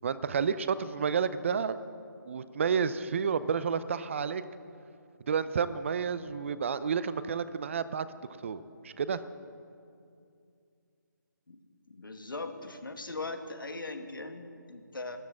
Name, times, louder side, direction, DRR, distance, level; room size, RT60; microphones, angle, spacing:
voice 1, 0.0-1.8 2.3-4.4 5.3-8.1 8.4-9.2, right 6 dB, 40° right, 14 dB, 0.5 m, -30 dB
voice 2, 11.9-15.2, left 3 dB, 80° left, 7 dB, 1.5 m, -40 dB
13.0 x 11.5 x 7.2 m, 2.4 s
figure-of-eight pair, 155°, 11 cm